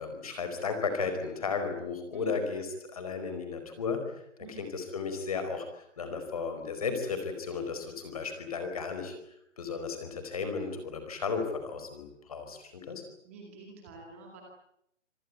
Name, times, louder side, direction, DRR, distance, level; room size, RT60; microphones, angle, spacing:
voice 1, 0.0-4.0 4.4-9.1 9.6-13.0, left 5 dB, 30° left, 7 dB, 4.8 m, -34 dB
voice 2, 13.2-14.4, right 4 dB, 10° right, 0 dB, 2.2 m, -48 dB
27.0 x 19.0 x 9.5 m, 0.75 s
hypercardioid pair, 180°, 37 cm